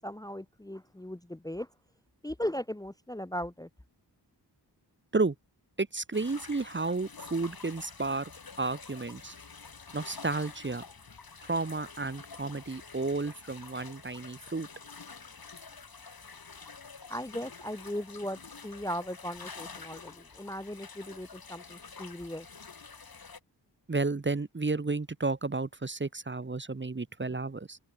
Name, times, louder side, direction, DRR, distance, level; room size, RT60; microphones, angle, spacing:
voice 1, 0.0-1.7 2.2-3.7 17.1-22.5, equal, 10° left, 0.9 m, -38 dB
voice 2, 5.8-8.3 8.6-9.3 9.9-10.8 11.5-14.7 23.9-27.8, right 3 dB, 25° right, 1.1 m, -32 dB
sound 1, 6.1-23.4, left 5 dB, 60° left, 3.5 m, -48 dB
open air
wide cardioid pair, 75°, 41 cm